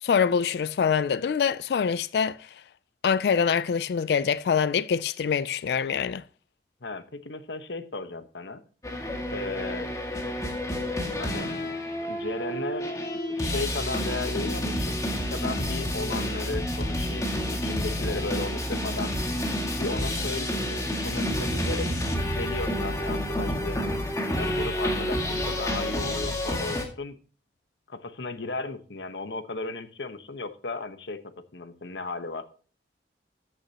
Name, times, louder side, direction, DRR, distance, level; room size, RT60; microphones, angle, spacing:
voice 1, 0.0-2.6 3.0-6.2, left 6 dB, 65° left, 0.3 m, -25 dB
voice 2, 6.8-8.6 9.3-9.9 11.2-11.5 12.0-12.9 13.3-19.1 19.8-23.9 24.4-27.2 27.9-31.2 31.5-32.5, left 3 dB, 85° left, 1.1 m, -35 dB
sound 1, 8.8-26.8, equal, 20° left, 2.0 m, -29 dB
13.5 x 8.7 x 2.9 m
head